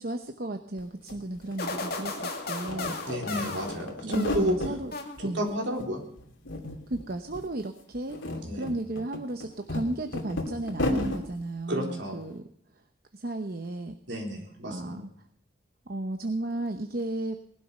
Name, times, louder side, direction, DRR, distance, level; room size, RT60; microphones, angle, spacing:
voice 1, 0.0-3.0 4.0-4.9 5.2-5.5 6.9-12.4 13.1-14.0 14.7-15.1 15.9-17.4, right 2 dB, 50° right, 6 dB, 0.9 m, -34 dB
sound 1, 0.8-0.9 1.1-2.2 2.5-4.8 5.2-5.9 6.2-7.0 7.3-7.4 7.9-11.2, left 1 dB, 75° left, 2.8 m, -33 dB
sound 2, 1.6-4.5 4.9-5.6, left 3 dB, 50° left, 2.4 m, -35 dB
voice 2, 3.1-4.6 5.3-6.0 8.4-8.6 11.7-12.2 14.1-15.0, equal, 65° right, 0 dB, 3.8 m, -31 dB
19.5 x 12.0 x 5.5 m, 0.72 s
head